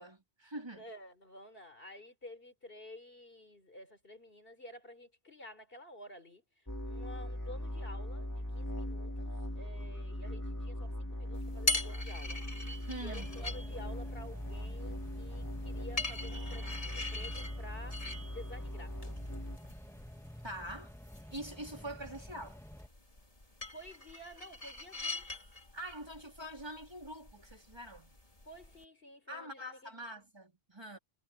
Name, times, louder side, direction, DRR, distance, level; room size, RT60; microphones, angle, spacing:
voice 1, 0.0-0.9 12.9-13.3 20.4-20.9 21.3-22.6 25.7-28.2 29.3-31.0, right 1 dB, 25° right, 3.6 m, -44 dB
voice 2, 0.8-6.4 6.9-12.4 13.0-19.0 23.7-25.3 28.5-30.1, left 1 dB, 65° left, 4.4 m, -51 dB
sound 1, 6.7-19.6, left 1 dB, 20° left, 2.8 m, -40 dB
sound 2, 11.3-28.8, left 2 dB, 35° left, 2.9 m, -43 dB
sound 3, 13.2-22.9, equal, 5° left, 1.9 m, -52 dB
omnidirectional pair, 1.0 m